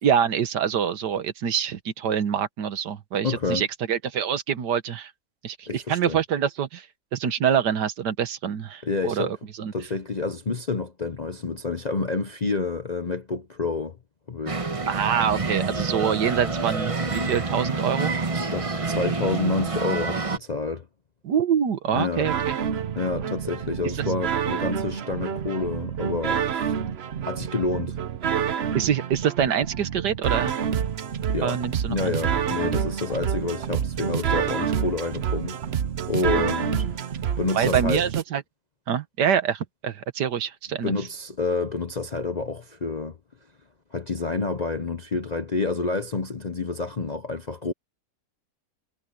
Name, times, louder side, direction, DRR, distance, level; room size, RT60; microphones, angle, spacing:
voice 1, 0.0-5.1 5.4-6.9 7.1-9.7 14.9-18.1 21.2-22.6 23.2-23.3 24.0-24.1 28.7-30.6 31.4-32.1 36.4-36.5 37.6-38.4 38.9-40.9, right 8 dB, 75° right, 1.8 m, -25 dB
voice 2, 3.2-3.6 5.7-6.2 8.8-9.4 9.7-14.0 14.3-14.6 18.3-20.9 21.9-22.3 23.0-26.7 27.3-28.0 31.3-31.6 31.9-35.6 36.1-37.0 37.4-38.0 40.8-43.2 43.9-47.7, left 3 dB, 40° left, 0.6 m, -28 dB
sound 1, 14.5-20.4, right 3 dB, 25° right, 1.0 m, -27 dB
sound 2, 22.2-38.2, right 8 dB, 50° right, 0.8 m, -28 dB
omnidirectional pair, 1.8 m